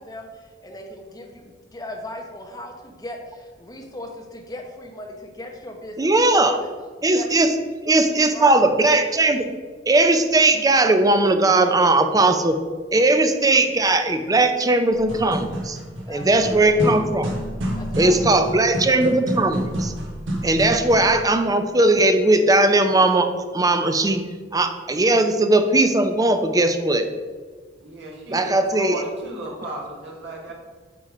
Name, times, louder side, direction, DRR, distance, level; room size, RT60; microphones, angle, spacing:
voice 1, 0.0-6.7 7.0-7.3 8.2-8.6 16.1-16.3 16.7-16.8 17.7-18.1, left 1 dB, 20° left, 2 dB, 1.0 m, -37 dB
voice 2, 6.0-6.6 7.0-7.5 7.9-9.5 9.9-12.6 12.9-15.8 16.1-17.3 18.0-19.9 20.4-24.2 24.5-27.0 28.3-29.0, right 2 dB, 20° right, 8 dB, 0.5 m, -18 dB
sound 1, 14.9-21.2, right 1 dB, 90° right, 1.2 m, -29 dB
voice 3, 27.8-30.5, right 1 dB, 65° right, -3 dB, 2.0 m, -34 dB
8.4 x 3.7 x 4.9 m, 1.5 s
head